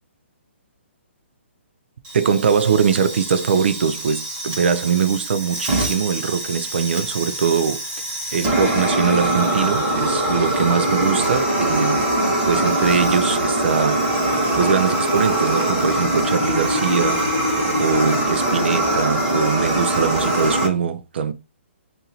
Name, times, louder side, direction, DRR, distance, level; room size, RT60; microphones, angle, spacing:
Fire, 2.0-20.7, right 1 dB, 20° right, 1.3 m, -22 dB
voice 1, 2.1-7.8 8.3-12.1 12.5-17.3 17.8-21.3, right 6 dB, 60° right, 0.5 m, -22 dB
2.7 x 2.6 x 4.2 m
hypercardioid pair, 165°, 7 cm